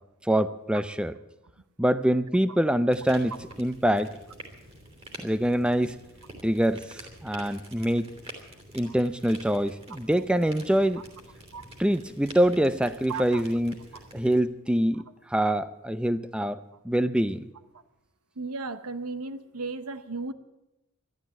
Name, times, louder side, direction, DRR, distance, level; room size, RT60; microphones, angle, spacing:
voice 1, 0.2-1.1 1.8-4.2 5.2-6.0 6.4-8.1 8.7-11.0 11.8-13.8 14.1-17.5, right 1 dB, 5° right, 13 dB, 0.5 m, -25 dB
sound 1, 2.9-14.4, right 1 dB, 25° right, 3.0 m, -47 dB
voice 2, 13.1-13.4 18.4-20.3, right 4 dB, 85° right, 12 dB, 0.9 m, -35 dB
13.0 x 12.0 x 8.4 m, 0.91 s
head